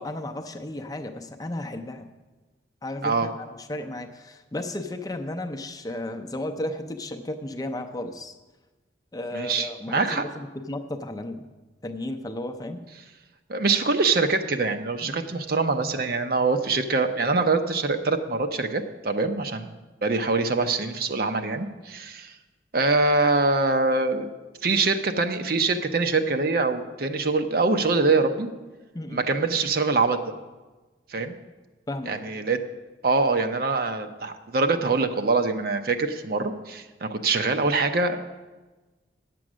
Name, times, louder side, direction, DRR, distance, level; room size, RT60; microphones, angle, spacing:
voice 1, 0.0-2.1 2.8-8.4 9.1-11.5 11.8-12.8 15.0-15.2 28.9-29.2 31.9-32.4, left 1 dB, 20° left, 6 dB, 0.5 m, -34 dB
voice 2, 9.3-10.2 13.5-19.7 20.0-22.3 22.7-24.3 24.6-28.5 29.1-30.2 31.1-31.3 32.1-32.6 33.0-38.2, right 3 dB, 55° right, 7 dB, 0.7 m, -24 dB
9.5 x 7.7 x 6.1 m, 1.2 s
head